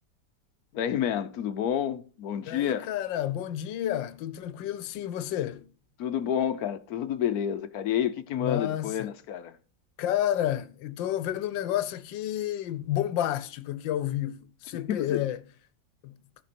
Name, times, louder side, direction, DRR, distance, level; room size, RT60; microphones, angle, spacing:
voice 1, 0.7-2.9 6.0-9.6 14.9-15.2, left 9 dB, 65° left, 1.0 m, -29 dB
voice 2, 2.5-5.7 8.4-9.1 10.0-15.4 16.0-16.1, left 12 dB, 85° left, 1.4 m, -30 dB
14.5 x 5.3 x 4.2 m
omnidirectional pair, 2.0 m